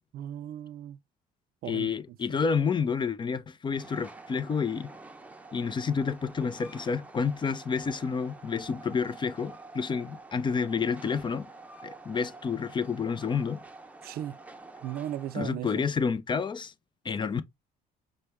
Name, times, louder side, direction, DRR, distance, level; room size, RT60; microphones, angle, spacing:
voice 1, 0.1-1.0 1.6-1.9 14.0-14.4 14.8-15.8 17.1-17.2, right 12 dB, 65° right, 0.4 m, -36 dB
voice 2, 1.6-4.9 5.5-11.5 11.8-13.6 15.3-16.7 17.0-17.4, left 5 dB, 25° left, 0.5 m, -29 dB
Train, 3.7-15.6, right 3 dB, 10° right, 0.7 m, -48 dB
5.1 x 2.1 x 4.5 m
cardioid pair, 110°, 17 cm